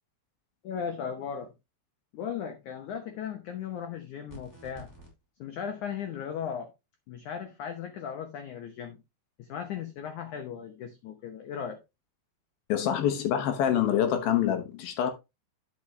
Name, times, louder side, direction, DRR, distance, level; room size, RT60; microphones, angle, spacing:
voice 1, 0.6-1.5 2.1-4.9 5.4-6.7 7.1-9.0 9.4-11.8, left 7 dB, 85° left, 1.7 m, -37 dB
sound 1, 4.3-5.1, right 2 dB, 5° left, 3.6 m, -48 dB
voice 2, 12.7-15.1, left 10 dB, 70° left, 2.7 m, -26 dB
10.5 x 6.1 x 3.2 m
omnidirectional pair, 4.9 m